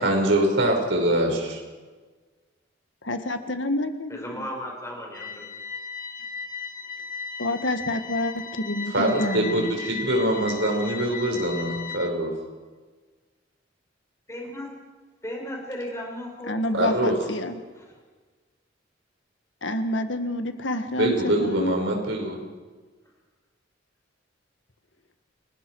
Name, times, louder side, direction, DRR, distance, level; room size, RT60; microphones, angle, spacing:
voice 1, 0.0-1.6 8.9-12.3 16.7-17.1 21.0-22.4, right 1 dB, 70° right, 1 dB, 5.4 m, -23 dB
voice 2, 3.0-4.5 7.4-9.8 16.5-17.6 19.6-21.8, left 1 dB, 70° left, 8 dB, 1.7 m, -28 dB
voice 3, 4.1-5.5 14.3-14.7 15.2-16.6, equal, 15° left, 0 dB, 5.6 m, -35 dB
sound 1, 5.1-12.1, left 5 dB, 50° left, 1.7 m, -36 dB
29.5 x 19.0 x 4.8 m, 1.4 s
head